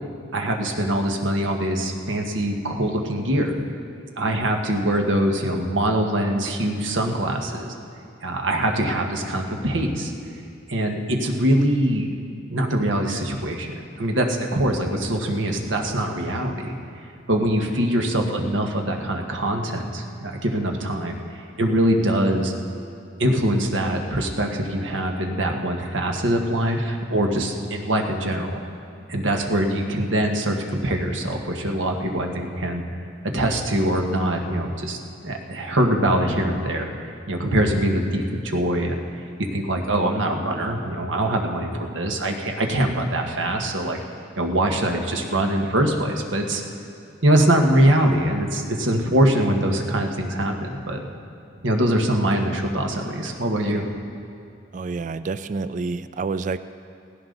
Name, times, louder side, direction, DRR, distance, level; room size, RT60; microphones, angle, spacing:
voice 1, 0.3-3.6 4.2-7.7 8.2-10.1 10.7-12.1 12.5-16.7 17.3-21.2 21.6-22.5 23.2-28.6 29.1-32.8 33.3-36.9 37.3-39.0 39.5-44.0 44.4-46.6 47.2-51.1 51.6-53.9, right 1 dB, 90° right, 2 dB, 1.5 m, -23 dB
voice 2, 54.7-56.6, right 4 dB, 40° right, 13 dB, 0.3 m, -28 dB
17.0 x 16.5 x 3.9 m, 2.4 s
head